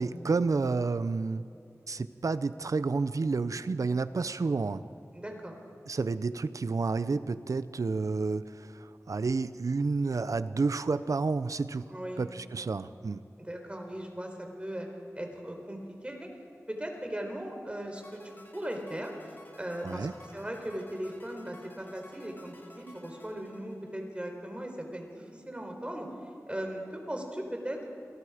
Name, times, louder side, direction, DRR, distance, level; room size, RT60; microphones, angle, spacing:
voice 1, 0.0-1.4 1.9-4.8 5.9-11.9 12.2-13.2 19.8-20.1, right 4 dB, 80° right, 14 dB, 0.7 m, -30 dB
voice 2, 5.1-5.6 11.9-12.2 12.6-12.7 13.4-14.9 15.2-15.8 16.0-16.3 16.7-19.1 19.6-20.1 20.3-26.1 26.5-27.9, right 1 dB, 20° right, 2 dB, 4.1 m, -38 dB
sound 1, 18.0-24.3, left 1 dB, 35° left, 3.0 m, -54 dB
28.0 x 18.5 x 5.1 m, 2.9 s
wide cardioid pair, 60°, 6 cm